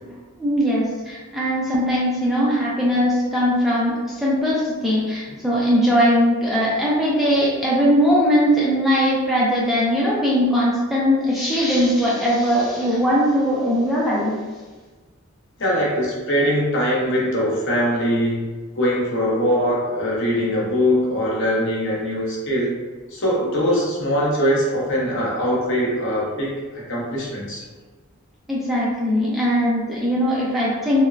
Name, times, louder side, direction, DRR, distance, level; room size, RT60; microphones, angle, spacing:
voice 1, 0.4-14.4 28.5-31.0, equal, ahead, -7 dB, 0.3 m, -20 dB
voice 2, 15.6-18.5 18.7-22.7 23.1-27.6, equal, 60° left, -5 dB, 0.8 m, -22 dB
3.1 x 2.1 x 2.4 m, 1.3 s
head